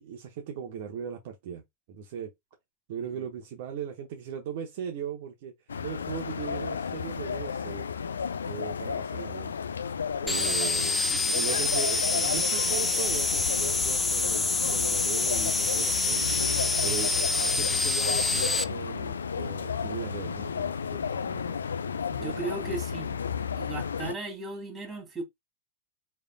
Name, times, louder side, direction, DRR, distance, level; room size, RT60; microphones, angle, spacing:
voice 1, 0.0-1.6 1.9-2.3 2.9-5.5 5.8-7.9 8.5-9.5 10.2-16.3 16.8-21.6 22.2-22.4, right 8 dB, 50° right, 0.9 m, -38 dB
sound 1, 5.7-24.1, left 6 dB, 70° left, 0.4 m, -33 dB
sound 2, 10.3-18.6, left 3 dB, 10° left, 0.4 m, -27 dB
voice 2, 22.1-23.2 23.5-25.2, right 3 dB, 15° right, 1.8 m, -36 dB
5.0 x 3.4 x 2.2 m
figure-of-eight pair, 90°, 0 cm